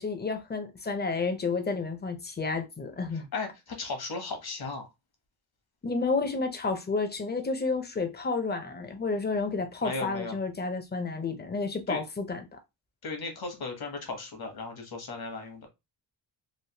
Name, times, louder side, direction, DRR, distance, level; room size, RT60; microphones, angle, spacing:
voice 1, 0.0-3.3 5.8-12.6, left 4 dB, 25° left, 0.6 m, -31 dB
voice 2, 3.3-4.9 9.8-10.3 11.9-12.0 13.0-15.7, left 3 dB, 55° left, 1.1 m, -36 dB
3.2 x 2.6 x 2.8 m
wide cardioid pair, 120°, 44 cm